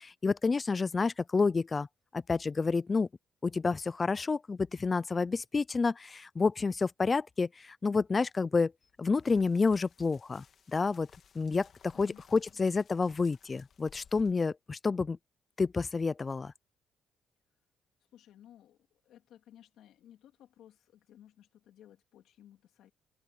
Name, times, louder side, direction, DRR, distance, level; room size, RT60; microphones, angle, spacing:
voice 1, 0.0-1.9 2.1-3.1 3.4-8.7 9.0-11.1 11.4-15.2 15.6-16.5, left 4 dB, 30° left, 0.4 m, -29 dB
sound 1, 8.8-14.3, left 7 dB, 55° left, 2.1 m, -61 dB
voice 2, 11.9-12.6 18.1-22.9, left 11 dB, 80° left, 3.1 m, -58 dB
open air
cardioid pair, 90°, 0 cm